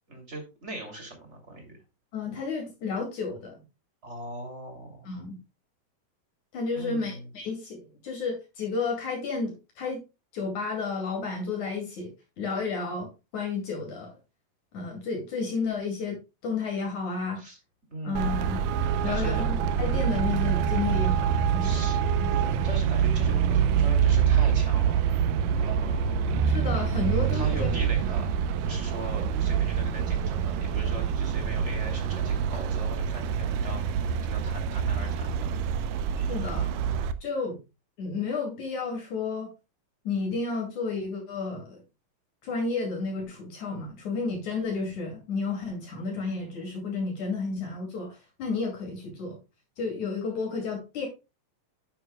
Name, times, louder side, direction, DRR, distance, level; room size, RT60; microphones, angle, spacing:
voice 1, 0.1-1.8 4.0-5.1 6.7-7.3 17.4-17.6 17.9-18.6 19.1-19.4 21.6-22.0 22.3-25.0 25.5-26.4 27.3-35.5, right 2 dB, 20° right, 2.8 m, -40 dB
voice 2, 2.1-3.6 5.1-5.4 6.5-10.0 10.3-14.1 14.7-17.4 18.0-18.6 19.0-21.9 22.2-22.3 26.4-27.7 36.3-36.7 37.2-37.6 38.0-39.5 40.1-41.8 42.4-49.4 49.8-51.1, left 4 dB, 65° left, 3.7 m, -32 dB
Traffic noise roadway noise, 18.2-37.1, right 8 dB, 80° right, 2.3 m, -26 dB
10.0 x 9.2 x 2.3 m
omnidirectional pair, 3.8 m